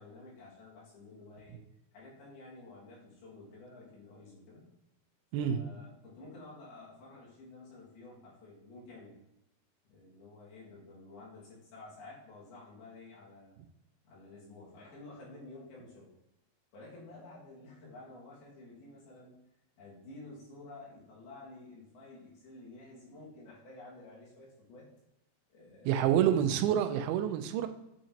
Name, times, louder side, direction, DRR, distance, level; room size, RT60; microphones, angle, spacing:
voice 1, 0.0-1.6 1.9-4.7 5.4-9.1 9.9-13.6 14.0-16.1 16.7-19.4 19.8-24.9 25.5-26.1, left 2 dB, 85° left, -6 dB, 4.0 m, -51 dB
voice 2, 25.9-27.7, right 10 dB, 90° right, 8 dB, 2.5 m, -27 dB
8.2 x 5.6 x 2.9 m, 0.91 s
omnidirectional pair, 4.3 m